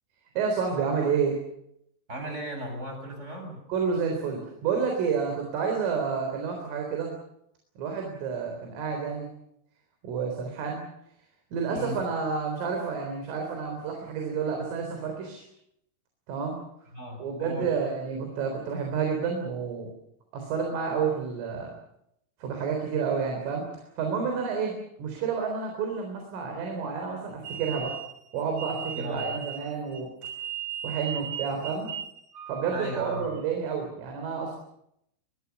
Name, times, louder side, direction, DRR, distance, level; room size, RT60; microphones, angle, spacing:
voice 1, 0.4-1.4 3.7-7.1 7.8-9.3 10.0-10.9 11.5-15.4 16.3-16.6 17.2-19.9 20.3-21.7 22.4-28.0 28.3-30.1 30.8-31.9 32.5-34.5, right 6 dB, 85° right, 2 dB, 6.4 m, -30 dB
voice 2, 2.1-3.6 11.7-12.0 16.9-17.7 29.0-29.3 32.7-33.2, equal, 15° right, 4 dB, 7.1 m, -36 dB
sound 1, 27.4-33.4, right 8 dB, 65° right, 2.4 m, -37 dB
23.0 x 22.5 x 7.1 m, 0.77 s
omnidirectional pair, 5.6 m